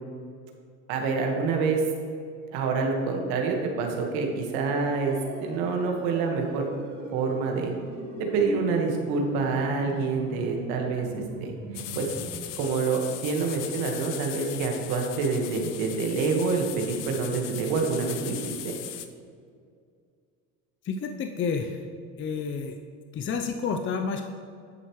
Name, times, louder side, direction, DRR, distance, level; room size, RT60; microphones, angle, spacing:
voice 1, 0.9-1.8 2.5-6.7 7.1-7.7 8.2-11.5 11.9-12.1 12.6-18.7, right 4 dB, 75° right, 2 dB, 1.7 m, -27 dB
sound 1, 5.0-12.4, right 2 dB, 50° right, 2.4 m, -39 dB
sound 2, 11.7-19.1, left 12 dB, 70° left, 0.8 m, -39 dB
voice 2, 20.8-21.9 22.2-22.8 23.1-24.2, left 5 dB, 30° left, 5 dB, 0.6 m, -30 dB
10.5 x 7.9 x 3.2 m, 2.3 s
supercardioid pair, 100°, 38 cm